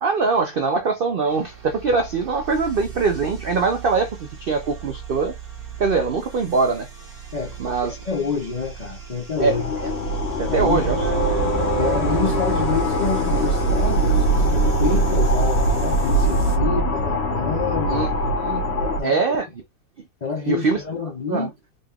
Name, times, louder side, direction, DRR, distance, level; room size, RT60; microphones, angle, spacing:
voice 1, 0.0-5.4 5.8-6.9 7.6-8.0 9.4-9.6 9.8-9.9 10.4-11.0 17.9-18.6 19.0-19.5 20.5-20.8 21.3-21.5, right 4 dB, 85° right, 0.4 m, -22 dB
sound 1, 1.3-16.6, right 8 dB, 40° right, 1.2 m, -37 dB
voice 2, 7.3-9.7 10.5-10.8 11.8-18.1 18.8-19.2 20.2-21.5, left 5 dB, 65° left, 0.4 m, -28 dB
sound 2, 9.4-19.0, right 1 dB, 50° left, 1.0 m, -21 dB
sound 3, 10.6-13.1, right 8 dB, 65° right, 1.2 m, -29 dB
3.9 x 2.3 x 3.4 m
omnidirectional pair, 1.7 m